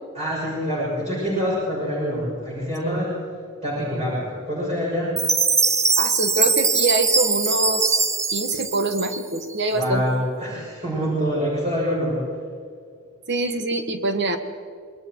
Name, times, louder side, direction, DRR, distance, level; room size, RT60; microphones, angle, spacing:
voice 1, 0.1-3.1 3.6-5.1 9.7-12.2, equal, 30° right, -7 dB, 6.8 m, -25 dB
Chime, 5.2-9.5, right 4 dB, 15° right, 0.6 m, -21 dB
voice 2, 6.0-10.0 13.3-14.4, right 2 dB, 55° right, 7 dB, 1.7 m, -24 dB
26.5 x 21.5 x 4.8 m, 2.1 s
head